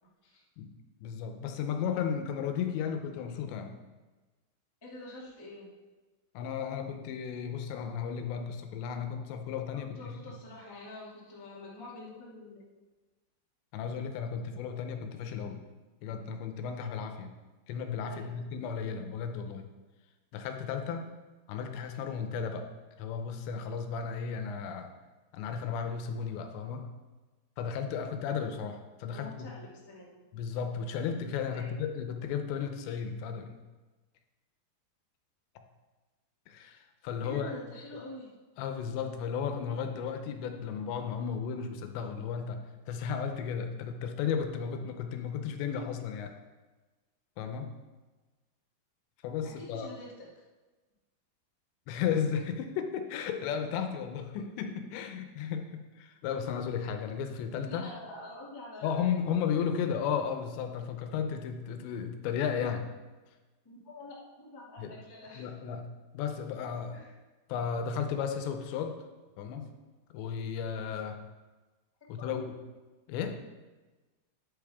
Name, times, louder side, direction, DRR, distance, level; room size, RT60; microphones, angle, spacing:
voice 1, 1.0-3.8 6.3-10.2 13.7-15.6 16.0-17.3 17.7-19.7 20.3-21.2 21.5-22.7 23.0-24.9 25.3-26.9 27.6-29.5 30.3-33.6 36.5-37.5 38.6-46.3 47.4-47.7 49.2-49.9 51.9-57.9 58.8-62.9 64.8-64.9 65.4-65.8 66.1-67.0 67.5-69.0 69.4-69.7 70.1-71.2 72.1-72.5 73.1-73.4, left 7 dB, 85° left, 6 dB, 3.0 m, -34 dB
voice 2, 4.8-5.7 9.9-12.6 18.0-18.4 29.1-30.2 31.5-31.8 37.2-38.3 49.4-50.3 57.5-59.3 63.6-65.5 66.9-67.1 72.2-72.4, left 2 dB, 35° left, -6 dB, 0.3 m, -46 dB
10.5 x 8.6 x 3.6 m, 1.2 s
omnidirectional pair, 5.0 m